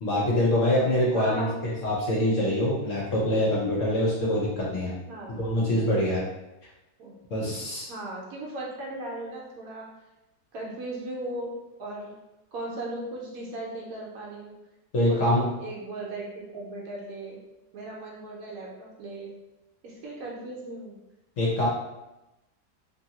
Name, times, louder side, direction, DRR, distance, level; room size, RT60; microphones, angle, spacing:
voice 1, 0.0-4.9 5.4-6.2 7.3-7.9 14.9-15.5 21.4-21.7, left 1 dB, 60° left, -5 dB, 0.9 m, -24 dB
voice 2, 1.1-1.6 5.1-5.4 7.0-7.1 7.9-9.9 10.5-11.5 11.8-12.1 12.5-14.5 15.1-15.3 15.6-17.4 17.7-19.3 19.8-21.0, right 2 dB, 70° right, -3 dB, 1.0 m, -37 dB
2.6 x 2.6 x 2.8 m, 0.98 s
omnidirectional pair, 1.8 m